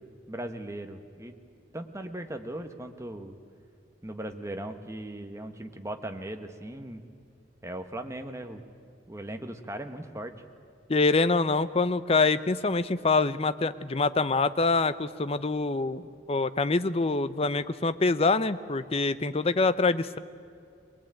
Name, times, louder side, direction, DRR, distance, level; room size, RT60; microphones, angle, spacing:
voice 1, 0.3-1.3 1.7-3.4 4.0-7.0 7.6-8.6 9.1-10.3, right 1 dB, 15° right, 6 dB, 1.3 m, -38 dB
voice 2, 10.9-20.2, left 3 dB, 35° left, 14 dB, 0.6 m, -25 dB
22.0 x 20.5 x 9.0 m, 2.3 s
head